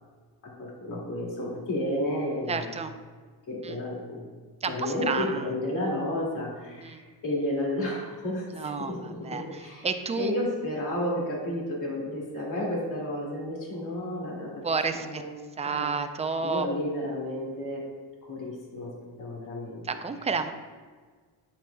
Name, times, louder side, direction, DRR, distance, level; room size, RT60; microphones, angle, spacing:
voice 1, 0.4-2.8 3.5-4.2 4.7-14.5 14.9-15.3 15.6-16.0 16.4-17.8 18.3-20.5, left 1 dB, 50° left, -3 dB, 2.2 m, -32 dB
voice 2, 2.5-2.9 3.6-3.8 4.6-5.5 6.8-7.0 8.5-10.3 14.6-15.2 15.6-16.7 19.8-20.5, right 5 dB, 15° right, 8 dB, 0.3 m, -31 dB
8.6 x 7.6 x 2.2 m, 1.5 s
cardioid pair, 120°, 41 cm